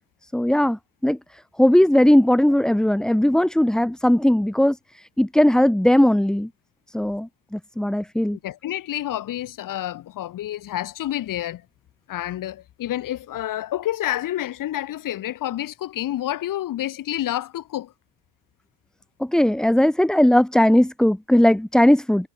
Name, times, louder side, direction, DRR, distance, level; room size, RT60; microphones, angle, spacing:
voice 1, 0.3-1.2 1.6-6.5 6.9-8.4 19.2-22.3, left 1 dB, ahead, 0.6 m, -18 dB
voice 2, 8.4-11.6 12.1-17.9, left 13 dB, 50° left, 5.6 m, -29 dB
cardioid pair, 145°, 41 cm